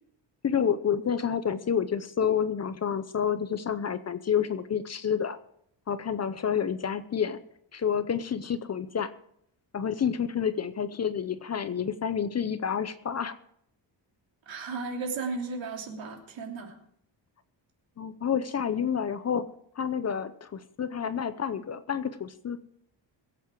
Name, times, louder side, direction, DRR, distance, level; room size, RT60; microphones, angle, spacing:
voice 1, 0.4-5.4 5.9-7.4 7.7-9.1 9.7-13.3 18.0-19.5 19.8-22.6, left 7 dB, 35° left, 12 dB, 0.7 m, -29 dB
voice 2, 14.5-16.7, right 4 dB, 85° right, 1 dB, 3.1 m, -35 dB
22.0 x 8.3 x 4.6 m, 0.69 s
wide cardioid pair, 160°, 45 cm